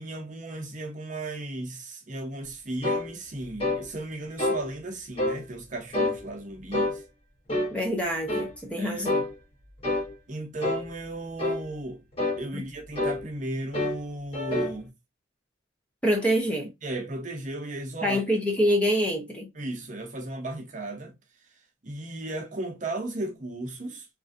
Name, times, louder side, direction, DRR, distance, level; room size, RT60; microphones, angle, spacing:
voice 1, 0.0-7.0 8.8-9.1 10.3-12.0 12.4-14.9 16.8-18.2 19.6-21.1 21.8-24.1, right 2 dB, 40° right, 0.7 m, -35 dB
sound 1, 2.8-3.1 3.6-3.8 4.4-4.6 5.2-5.4 5.9-6.2 6.7-7.0 7.5-7.7 8.3-8.5 9.0-9.3 9.8-10.1 10.6-10.9 11.4-11.6 12.2-12.4 13.0-13.2 13.7-14.0 14.3-14.8, left 2 dB, 30° left, 0.9 m, -27 dB
voice 2, 7.7-9.2 12.5-12.6 16.0-16.7 18.0-19.5, equal, 5° left, 0.5 m, -26 dB
3.1 x 2.5 x 2.5 m
head